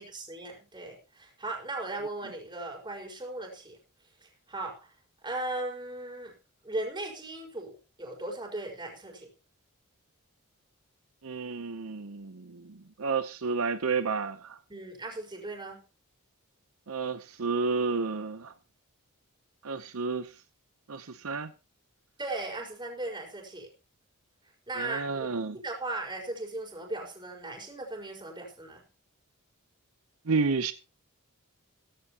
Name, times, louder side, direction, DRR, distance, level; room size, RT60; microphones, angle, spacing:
voice 1, 0.0-3.8 4.2-4.9 5.2-6.3 6.6-9.3 14.7-15.8 22.2-23.7 24.7-28.9, right 2 dB, 20° right, 4.8 m, -37 dB
voice 2, 11.2-14.6 16.9-18.5 19.6-20.3 20.9-21.5 24.8-25.6 30.3-30.7, right 4 dB, 70° right, 0.8 m, -31 dB
16.0 x 15.5 x 2.9 m
head